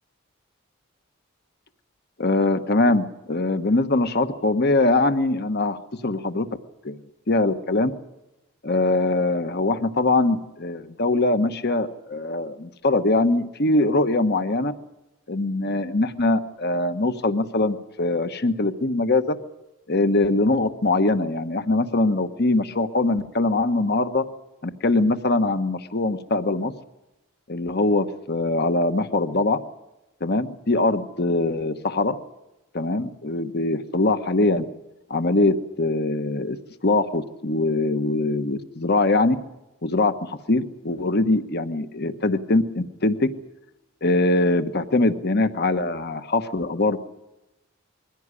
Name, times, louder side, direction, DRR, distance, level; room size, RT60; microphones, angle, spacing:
voice 1, 2.2-6.5 6.8-7.0 7.3-7.9 8.6-14.7 15.3-19.4 19.9-24.2 24.8-26.7 27.5-29.6 30.2-32.2 32.7-34.6 35.1-36.6 36.8-39.4 39.8-43.3 44.0-47.0, left 2 dB, 50° left, 10 dB, 1.2 m, -22 dB
22.5 x 16.5 x 9.8 m, 0.97 s
head